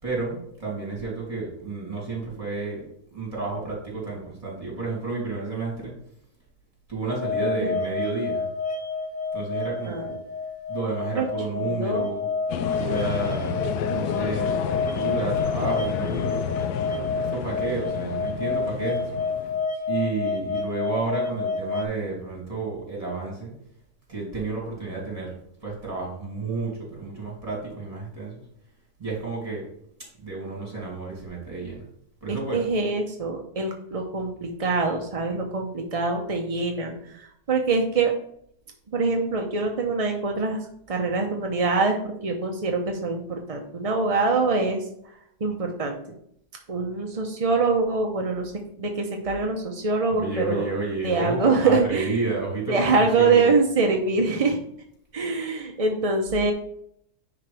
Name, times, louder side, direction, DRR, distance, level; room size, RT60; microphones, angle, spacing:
voice 1, 0.0-2.8 3.1-5.9 6.9-8.5 9.3-10.1 10.7-12.3 12.7-16.4 16.9-19.2 19.9-23.6 24.1-25.4 25.6-28.4 29.0-29.7 30.2-31.8 32.2-32.7 50.1-53.5, right 3 dB, 20° right, -4 dB, 3.0 m, -31 dB
sound 1, 7.1-21.8, left 4 dB, 35° left, 1.0 m, -29 dB
voice 2, 11.5-12.1 32.3-38.1 38.9-40.6 40.9-46.0 46.7-48.5 48.8-50.7 51.0-52.2 52.7-54.6 55.1-56.5, right 3 dB, 40° right, 2 dB, 0.5 m, -24 dB
sound 2, 12.5-19.7, left 8 dB, 80° left, 1.1 m, -31 dB
9.6 x 4.8 x 3.4 m, 0.70 s
omnidirectional pair, 1.7 m